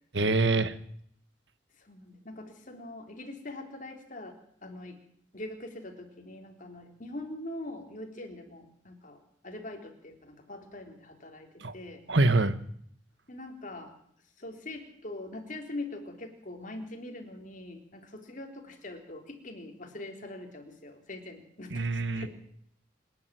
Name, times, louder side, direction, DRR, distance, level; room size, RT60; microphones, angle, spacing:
voice 1, 0.1-0.7 11.6-11.7 12.1-12.5 21.7-22.3, right 2 dB, 65° right, 12 dB, 1.5 m, -25 dB
voice 2, 1.9-4.4 4.6-5.0 5.3-12.0 13.3-13.9 14.4-22.3, left 2 dB, 45° left, 4 dB, 3.7 m, -43 dB
26.5 x 11.0 x 9.3 m, 0.66 s
head